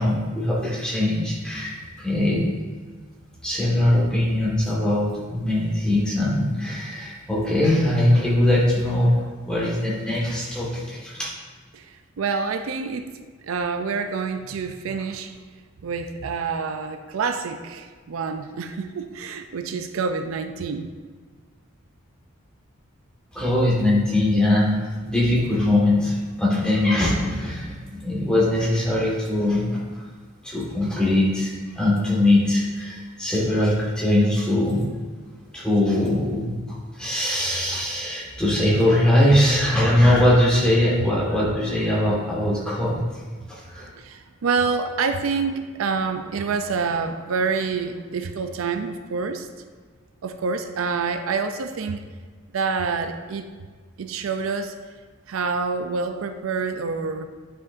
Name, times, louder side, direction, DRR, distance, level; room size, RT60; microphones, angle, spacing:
voice 1, 0.0-2.4 3.4-9.1 9.5-11.3 23.3-24.8 25.1-29.8 30.4-34.8 35.5-36.6 37.0-43.0 43.5-43.9, left 1 dB, 5° left, -6 dB, 1.6 m, -21 dB
voice 2, 12.2-13.1 13.5-15.3 15.8-20.9 43.9-49.5 50.2-52.0 52.5-53.4 54.0-54.7 55.3-57.3, right 5 dB, 80° right, 8 dB, 0.4 m, -27 dB
9.8 x 5.1 x 2.6 m, 1.5 s
head